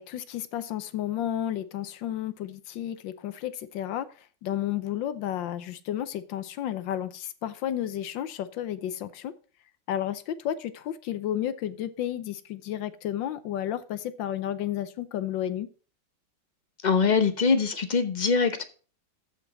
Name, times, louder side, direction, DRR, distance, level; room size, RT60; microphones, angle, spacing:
voice 1, 0.0-4.1 4.4-9.3 9.9-15.7, left 11 dB, 75° left, 1.4 m, -32 dB
voice 2, 16.8-18.6, left 5 dB, 35° left, 0.7 m, -23 dB
14.0 x 5.2 x 4.2 m
omnidirectional pair, 2.1 m